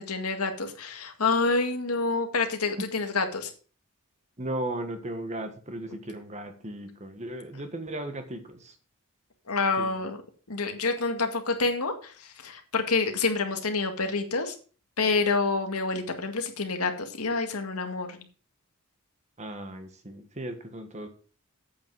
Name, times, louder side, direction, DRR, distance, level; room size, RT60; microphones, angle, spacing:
voice 1, 0.0-3.5 9.5-10.2 10.5-14.6 15.0-18.2, left 3 dB, 85° left, 5 dB, 2.0 m, -28 dB
voice 2, 4.4-8.7 9.8-10.0 19.4-21.1, right 1 dB, 30° right, 7 dB, 1.5 m, -36 dB
8.6 x 8.5 x 4.8 m, 0.38 s
head